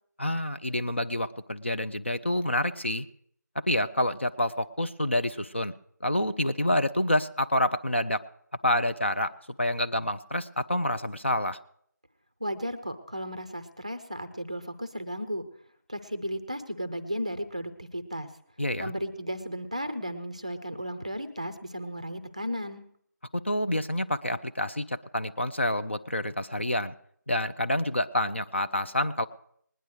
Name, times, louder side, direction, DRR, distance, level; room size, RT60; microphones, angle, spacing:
voice 1, 0.2-3.1 3.7-5.7 6.0-8.2 8.6-9.3 9.6-11.6 18.6-18.9 23.3-26.9 27.3-29.3, left 1 dB, 40° left, 9 dB, 0.5 m, -28 dB
voice 2, 12.4-15.5 15.9-18.3 18.8-22.8, equal, 20° right, 11 dB, 0.5 m, -34 dB
20.5 x 10.0 x 3.2 m, 0.66 s
figure-of-eight pair, 170°, 10 cm